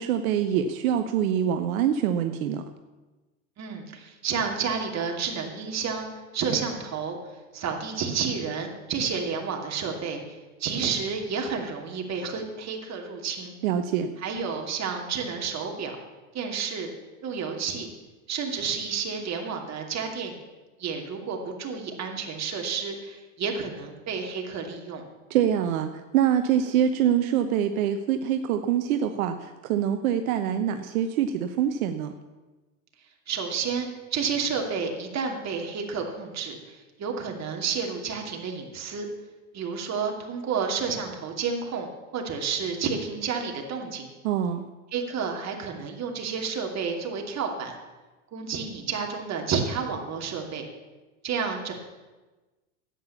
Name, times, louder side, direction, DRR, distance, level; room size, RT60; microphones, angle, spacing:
voice 1, 0.0-2.6 13.6-14.1 25.3-32.1 44.2-44.7, right 9 dB, 75° right, 8 dB, 0.9 m, -25 dB
voice 2, 3.6-6.1 6.3-7.2 7.5-10.2 10.6-13.5 14.2-16.0 16.3-16.9 17.2-17.9 18.3-20.4 20.8-25.0 33.3-39.1 39.5-44.1 44.9-47.7 48.3-50.6 51.2-51.7, right 6 dB, 40° right, 2 dB, 2.7 m, -30 dB
11.0 x 8.7 x 7.1 m, 1.2 s
hypercardioid pair, 100°, 42 cm